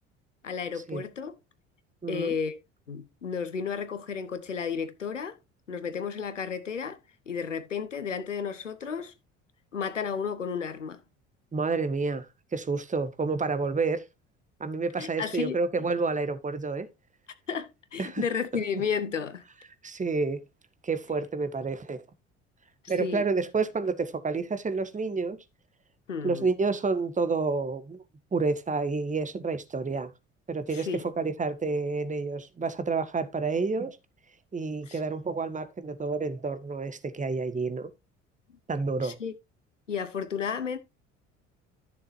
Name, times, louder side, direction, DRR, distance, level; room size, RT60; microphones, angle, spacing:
voice 1, 0.4-1.3 2.1-2.6 2.9-5.4 5.7-7.0 7.3-9.1 9.7-11.0 15.0-15.6 17.5-19.4 23.0-23.2 26.1-26.5 30.7-31.1 34.9-35.0 39.0-39.3 39.9-40.8, left 6 dB, 85° left, 1.1 m, -32 dB
voice 2, 2.0-2.4 11.5-12.3 12.5-14.0 14.6-16.9 18.0-18.2 19.8-20.4 20.8-22.0 22.9-25.4 26.2-28.0 28.3-30.1 30.5-34.0 34.5-37.9 38.7-39.2, right 4 dB, 20° right, 1.6 m, -29 dB
14.0 x 6.9 x 2.6 m
figure-of-eight pair, 55°, 36 cm